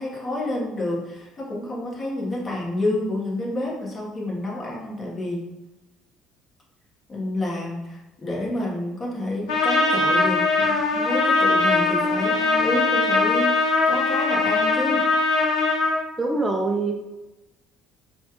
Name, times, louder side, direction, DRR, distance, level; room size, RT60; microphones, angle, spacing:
voice 1, 0.0-5.4 7.1-15.0, left 1 dB, 30° left, -4 dB, 1.2 m, -29 dB
Trumpet, 9.5-16.0, left 3 dB, 80° left, 0.7 m, -21 dB
voice 2, 16.2-17.0, right 3 dB, 15° right, 2 dB, 0.4 m, -24 dB
4.2 x 2.3 x 3.0 m, 1.0 s
supercardioid pair, 90°, 0 cm